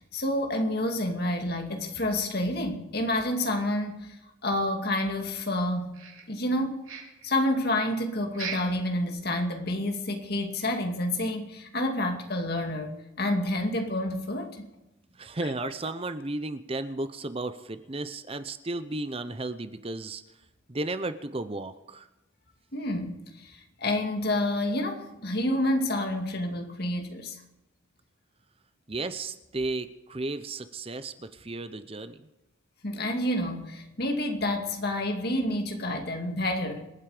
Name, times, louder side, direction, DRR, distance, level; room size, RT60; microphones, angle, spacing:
voice 1, 0.1-4.2 4.4-5.9 6.3-6.9 7.2-14.7 22.7-27.4 32.8-36.9, left 1 dB, 50° left, 2.3 m, -29 dB
sound 1, 5.9-6.6 6.8-7.3 8.3-8.8 9.2-9.3 9.7-9.8 10.3-10.4, right 6 dB, 80° right, 4.6 m, -39 dB
voice 2, 15.1-20.2 20.7-22.1 28.9-32.3, right 2 dB, 25° right, 0.7 m, -34 dB
27.0 x 9.4 x 5.0 m
head